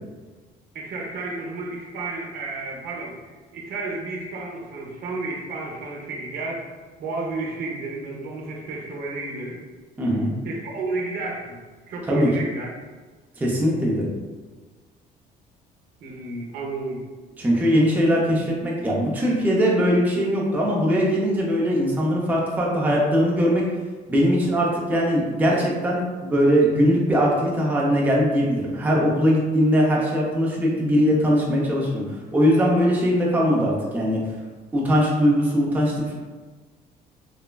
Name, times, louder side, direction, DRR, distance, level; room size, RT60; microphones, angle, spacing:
voice 1, 0.7-6.6 7.0-9.6 10.4-11.6 11.9-12.7 16.0-17.0, right 3 dB, 65° right, -2 dB, 0.7 m, -32 dB
voice 2, 10.0-10.3 12.1-12.3 13.4-14.1 17.4-23.6 24.1-32.0 32.3-34.2 34.7-36.1, equal, 10° right, -4 dB, 0.5 m, -20 dB
3.2 x 2.1 x 2.2 m, 1.3 s
cardioid pair, 110°, 17 cm